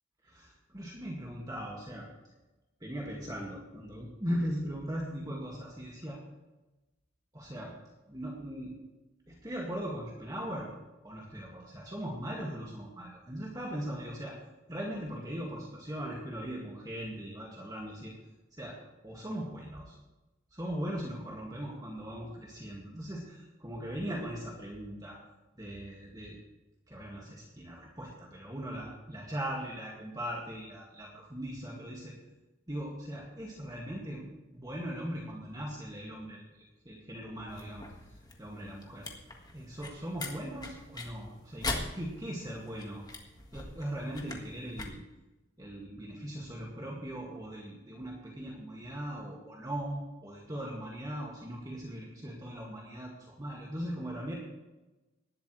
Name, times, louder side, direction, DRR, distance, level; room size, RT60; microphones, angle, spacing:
voice 1, 0.2-2.1 2.8-6.2 7.3-7.7 8.1-8.7 9.3-10.7 11.0-14.4 14.7-18.1 18.5-18.8 19.0-20.0 20.5-25.2 25.6-26.4 26.9-32.1 32.7-39.1 39.5-43.1 43.5-45.0 45.6-54.3, equal, 20° right, -3 dB, 2.0 m, -39 dB
sound 1, 37.5-44.8, left 2 dB, 20° left, 1.6 m, -42 dB
18.5 x 12.0 x 3.2 m, 1.1 s
head